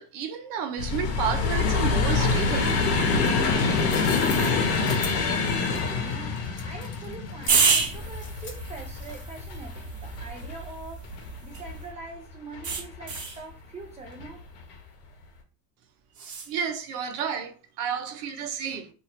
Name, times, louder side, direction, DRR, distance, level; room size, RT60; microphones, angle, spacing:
voice 1, 0.0-2.7 16.5-18.9, right 7 dB, 75° right, 0.8 m, -31 dB
sound 1, 0.8-11.9 12.5-13.2 14.1-14.3 14.6-14.7, left 4 dB, 80° left, 0.9 m, -26 dB
sound 2, 3.7-9.5, left 4 dB, 25° left, 0.8 m, -42 dB
voice 2, 3.9-11.1 11.4-14.4, right 3 dB, 15° right, 0.4 m, -43 dB
sound 3, 7.5-11.9 12.6-13.4 16.1-16.5, right 5 dB, 40° right, 1.0 m, -29 dB
2.8 x 2.6 x 2.9 m
supercardioid pair, 95°, 47 cm